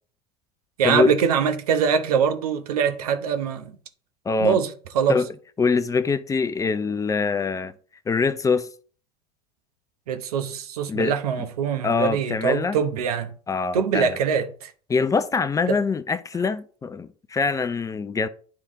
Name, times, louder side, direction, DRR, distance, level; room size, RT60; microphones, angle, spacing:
voice 1, 0.8-3.8 4.4-4.7 4.9-5.2 10.1-13.3 13.7-14.7 15.7-15.8, right 7 dB, 90° right, 0.9 m, -23 dB
voice 2, 4.3-4.6 5.1-5.3 5.6-7.7 8.1-8.7 10.9-11.1 11.8-12.8 13.5-14.1 14.9-18.3, left 5 dB, 15° left, 0.5 m, -24 dB
9.8 x 3.5 x 3.6 m
supercardioid pair, 100°, 19 cm